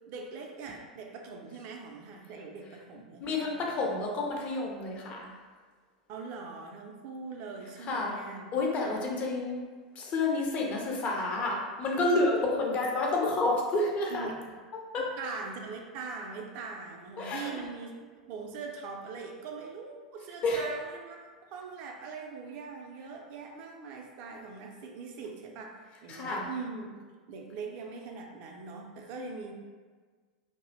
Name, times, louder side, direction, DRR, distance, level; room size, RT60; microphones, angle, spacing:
voice 1, 0.1-3.9 6.1-8.5 8.8-9.1 11.9-12.2 14.1-14.6 15.0-21.2 21.5-26.9 27.3-29.5, right 4 dB, 45° right, 2 dB, 0.4 m, -42 dB
voice 2, 3.2-5.3 7.9-8.2 8.5-9.6 10.0-14.3 14.9-15.0 17.2-17.5 20.4-20.7 26.1-26.5, left 2 dB, 35° left, 0 dB, 0.5 m, -29 dB
2.6 x 2.0 x 2.5 m, 1.5 s
figure-of-eight pair, 85°, 4 cm